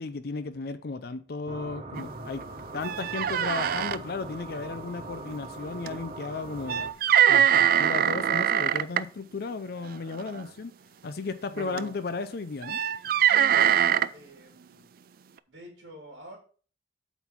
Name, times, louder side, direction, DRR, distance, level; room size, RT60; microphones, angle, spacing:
voice 1, 0.0-2.4 2.7-6.8 7.3-10.7 11.0-12.8, left 4 dB, 60° left, 0.5 m, -35 dB
sound 1, 1.5-6.9, right 2 dB, 35° right, 1.1 m, -41 dB
sound 2, 1.9-2.1 2.4-2.5 2.8-4.0 5.9-6.0 6.7-9.0 10.1-10.4 11.6-11.9 12.6-14.1, right 10 dB, 55° right, 0.4 m, -23 dB
voice 2, 13.2-14.9 15.5-16.4, right 1 dB, 70° right, 3.1 m, -48 dB
8.1 x 3.9 x 6.0 m
head